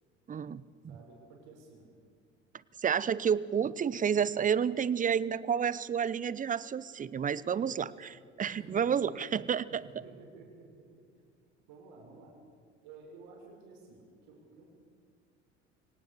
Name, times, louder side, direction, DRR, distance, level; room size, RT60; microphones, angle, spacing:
voice 1, 0.3-0.6 2.8-7.9 8.4-9.8, right 7 dB, 20° right, 19 dB, 0.7 m, -30 dB
voice 2, 0.9-1.9 7.5-7.9 8.4-9.2 9.6-10.8 11.7-12.4 12.8-14.7, right 4 dB, 60° right, 0 dB, 6.6 m, -52 dB
23.5 x 18.5 x 6.8 m, 2.2 s
figure-of-eight pair, 65°, 36 cm